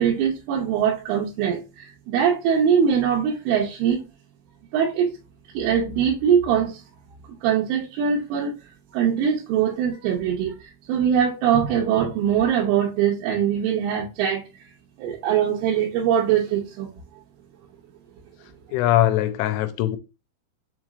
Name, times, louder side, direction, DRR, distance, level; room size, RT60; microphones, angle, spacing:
voice 1, 0.0-4.0 4.7-5.1 5.5-6.8 7.4-8.5 8.9-14.4 15.0-16.9, right 8 dB, 85° right, 3.3 m, -22 dB
voice 2, 18.7-20.0, left 13 dB, 85° left, 3.1 m, -21 dB
7.2 x 3.0 x 2.4 m
omnidirectional pair, 5.6 m